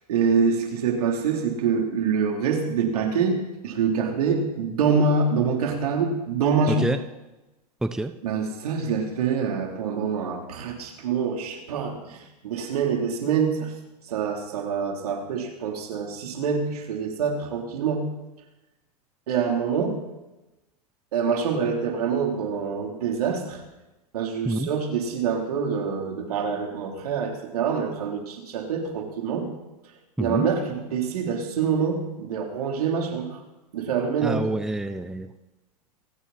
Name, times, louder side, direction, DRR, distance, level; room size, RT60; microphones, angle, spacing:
voice 1, 0.1-6.9 8.2-13.7 14.1-18.0 19.3-20.0 21.1-23.6 24.1-29.5 30.2-33.4 33.7-34.5, right 5 dB, 75° right, 2 dB, 3.6 m, -25 dB
voice 2, 34.2-35.3, right 1 dB, 5° right, 9 dB, 0.7 m, -27 dB
27.0 x 9.5 x 4.3 m, 1.0 s
hypercardioid pair, 110°, 19 cm